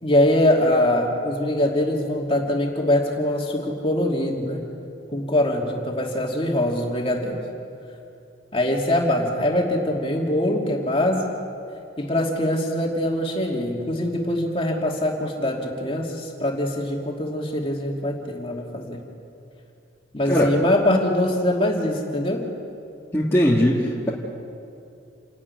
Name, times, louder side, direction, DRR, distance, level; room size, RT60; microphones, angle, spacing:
voice 1, 0.0-4.6 5.1-7.4 8.5-11.3 12.0-19.0 20.1-22.5, left 1 dB, 30° left, 0 dB, 2.6 m, -23 dB
voice 2, 23.1-24.1, equal, 15° left, -6 dB, 1.9 m, -19 dB
28.5 x 11.0 x 9.7 m, 2.6 s
head